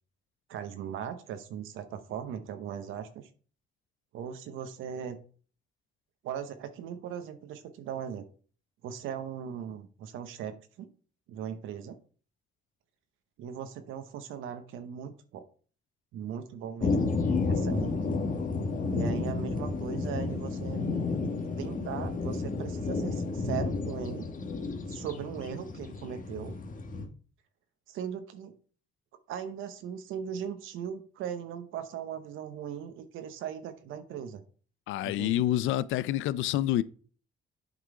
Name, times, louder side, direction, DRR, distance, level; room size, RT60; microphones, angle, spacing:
voice 1, 0.5-3.3 4.1-5.2 6.2-8.3 8.8-10.9 11.3-12.0 13.4-15.4 16.1-17.0 17.5-18.0 18.9-20.9 21.6-24.3 24.9-26.6 27.9-28.5 29.3-34.4 35.0-35.4, right 8 dB, 85° right, 0.8 m, -38 dB
sound 1, 16.8-27.1, left 3 dB, 40° left, 1.3 m, -31 dB
voice 2, 34.9-36.8, left 13 dB, 85° left, 0.4 m, -27 dB
8.1 x 3.8 x 4.8 m
cardioid pair, 90°, 20 cm